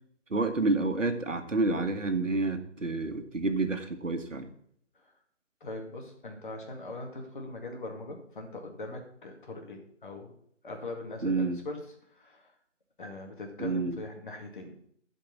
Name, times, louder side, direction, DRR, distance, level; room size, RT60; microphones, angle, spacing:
voice 1, 0.3-4.5 11.2-11.6 13.6-14.0, right 3 dB, 75° right, 7 dB, 1.7 m, -29 dB
voice 2, 5.6-10.3 10.6-11.8 12.1-12.5 13.0-14.7, left 2 dB, 40° left, 2 dB, 2.3 m, -41 dB
12.0 x 5.3 x 7.3 m, 0.66 s
figure-of-eight pair, 155°, 37 cm